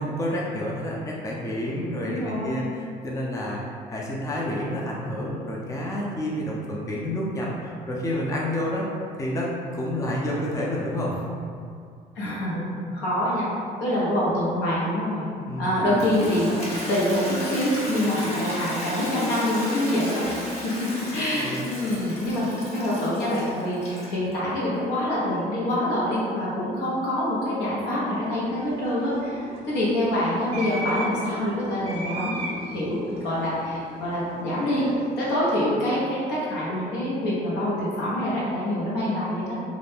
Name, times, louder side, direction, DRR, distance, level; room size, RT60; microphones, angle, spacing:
voice 1, 0.0-3.6 3.9-8.9 9.1-11.3 15.5-15.8 21.1-21.6, left 1 dB, 20° left, -4 dB, 0.4 m, -29 dB
voice 2, 2.0-2.6 12.2-12.7 12.9-13.5 13.8-15.3 15.6-20.2 20.6-32.4 32.7-34.9 35.2-39.6, left 1 dB, 90° left, -8 dB, 0.9 m, -26 dB
Toilet flush, 15.8-24.3, left 1 dB, 40° left, 0.9 m, -33 dB
sound 1, 27.9-36.3, right 1 dB, 35° right, 0.4 m, -38 dB
2.5 x 2.1 x 3.2 m, 2.3 s
cardioid pair, 110°, 17 cm